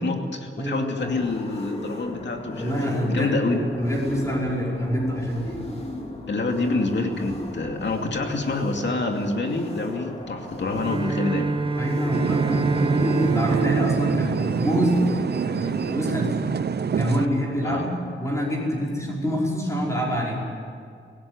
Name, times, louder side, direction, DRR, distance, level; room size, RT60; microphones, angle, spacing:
voice 1, 0.0-3.6 6.3-11.6 17.6-17.9, left 3 dB, 60° left, 3 dB, 2.6 m, -27 dB
voice 2, 0.6-1.1 2.6-5.5 11.8-15.0 15.4-16.3 17.0-20.4, equal, 15° left, -4 dB, 5.4 m, -26 dB
sound 1, 1.0-16.0, left 1 dB, 30° left, 3.1 m, -37 dB
Bowed string instrument, 10.6-15.3, right 3 dB, 25° right, 0.8 m, -27 dB
sound 2, 12.1-17.3, right 7 dB, 55° right, 0.7 m, -26 dB
25.0 x 18.0 x 9.6 m, 2.2 s
wide cardioid pair, 155°, 21 cm